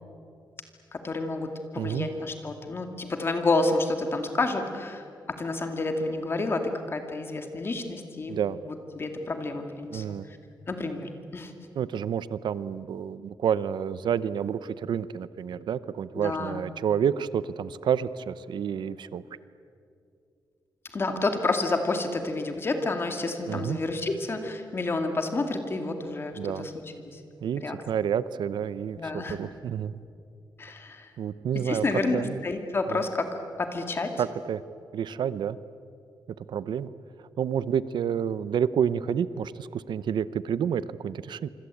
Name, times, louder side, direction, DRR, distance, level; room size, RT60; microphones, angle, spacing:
voice 1, 0.9-8.4 8.7-10.4 10.7-11.5 16.2-16.6 20.9-26.7 27.0-27.2 27.6-27.8 29.0-29.4 30.6-31.1 31.5-34.2, left 2 dB, 30° left, 5 dB, 2.3 m, -30 dB
voice 2, 1.8-2.1 8.3-8.6 9.9-10.2 11.8-19.2 23.5-23.8 26.4-26.7 27.4-30.0 31.2-31.9 32.1-32.4 32.9-33.0 34.2-34.6 34.9-35.6 36.4-36.9 37.4-41.5, right 8 dB, 75° right, 16 dB, 0.7 m, -29 dB
26.0 x 25.0 x 8.5 m, 2.5 s
wide cardioid pair, 175°, 8 cm